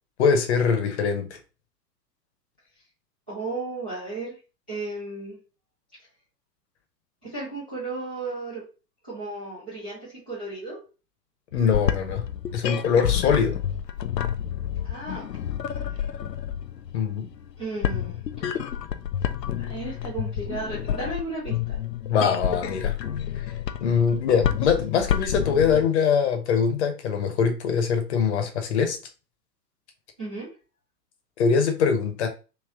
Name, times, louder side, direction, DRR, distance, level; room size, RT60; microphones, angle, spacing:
voice 1, 0.2-1.4 11.5-12.2 12.5-13.6 16.9-17.3 22.1-22.9 23.8-29.0 31.4-32.3, left 6 dB, 45° left, 0.9 m, -23 dB
voice 2, 3.3-4.4 4.7-5.4 7.2-8.6 9.0-10.8 14.8-15.3 15.7-16.0 17.6-18.2 19.6-21.8 30.2-30.5, right 3 dB, 5° right, 0.3 m, -34 dB
sound 1, 11.5-25.9, left 9 dB, 80° left, 0.6 m, -29 dB
3.4 x 2.9 x 3.6 m
figure-of-eight pair, 115°, 49 cm